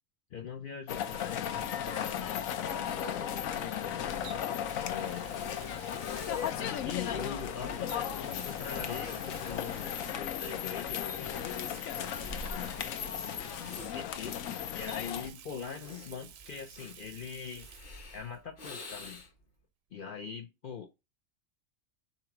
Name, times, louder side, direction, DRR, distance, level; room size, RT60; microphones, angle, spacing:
voice 1, 0.3-2.4 2.7-4.4 4.8-5.4 6.6-11.4 13.9-14.4 14.7-17.9 18.1-19.2 19.9-20.9, left 7 dB, 60° left, 0.5 m, -42 dB
sound 1, 0.9-15.3, left 9 dB, 85° left, 1.0 m, -36 dB
Water tap faucet, 1.3-1.5 4.2-7.3 7.9-10.3 11.1-14.5 14.9-18.0 18.3-18.4 20.0-20.1, right 9 dB, 80° right, 1.0 m, -53 dB
Breathing, 5.8-19.5, left 2 dB, 40° left, 0.9 m, -49 dB
3.9 x 3.0 x 4.4 m
omnidirectional pair, 1.4 m